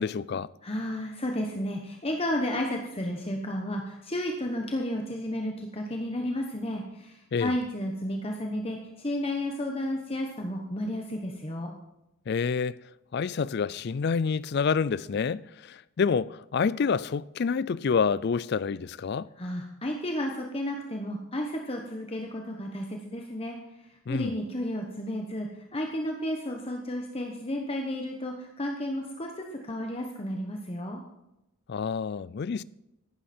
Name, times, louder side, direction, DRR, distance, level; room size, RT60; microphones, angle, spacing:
voice 1, 0.0-0.5 7.3-7.5 12.3-12.8 13.1-19.3 24.1-24.3 31.7-32.6, left 5 dB, 45° left, 0.3 m, -28 dB
voice 2, 0.6-11.7 19.4-23.6 24.1-31.0, left 1 dB, 25° left, 1.1 m, -32 dB
14.5 x 11.5 x 4.4 m
head